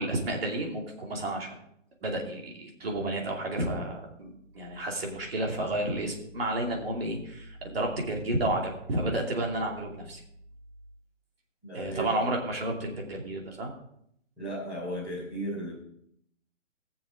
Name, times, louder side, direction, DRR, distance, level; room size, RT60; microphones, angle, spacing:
voice 1, 0.0-1.6 2.0-10.2 11.7-13.7, right 1 dB, 50° right, 0 dB, 2.7 m, -31 dB
voice 2, 11.6-12.3 14.4-15.8, right 1 dB, 10° right, -9 dB, 3.3 m, -35 dB
17.5 x 7.2 x 3.8 m, 0.73 s
hypercardioid pair, 180°, 38 cm